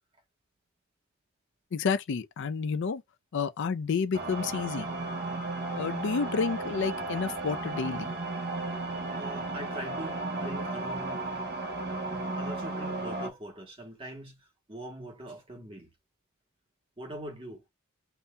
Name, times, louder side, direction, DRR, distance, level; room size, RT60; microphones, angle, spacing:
voice 1, 1.7-3.0 3.3-4.9 5.7-8.1, left 5 dB, 55° left, 0.4 m, -30 dB
sound 1, 4.1-13.3, right 2 dB, 50° right, 1.0 m, -34 dB
voice 2, 9.1-11.3 12.0-15.9 17.0-17.6, right 1 dB, 25° right, 1.4 m, -42 dB
6.9 x 2.7 x 2.2 m
head